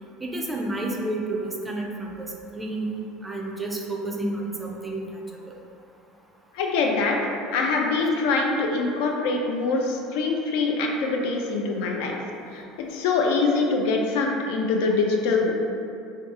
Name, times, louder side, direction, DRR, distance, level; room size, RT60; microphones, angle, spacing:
voice 1, 0.2-2.9 3.2-5.5, right 2 dB, 10° right, -1 dB, 0.3 m, -30 dB
voice 2, 6.5-7.2 7.5-12.2 12.5-15.5, left 3 dB, 75° left, 1 dB, 0.4 m, -24 dB
2.6 x 2.3 x 3.6 m, 2.6 s
cardioid pair, 135°, 0 cm